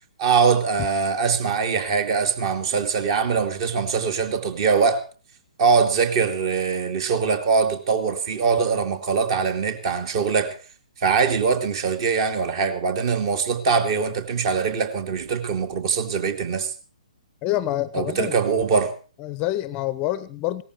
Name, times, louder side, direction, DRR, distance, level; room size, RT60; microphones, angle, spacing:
voice 1, 0.2-5.0 5.6-10.6 11.0-16.7 17.9-18.9, right 5 dB, 40° right, 2.4 m, -22 dB
voice 2, 17.4-18.3 19.2-20.6, left 14 dB, 25° left, 0.7 m, -26 dB
17.5 x 14.0 x 4.5 m
figure-of-eight pair, 125°, 4 cm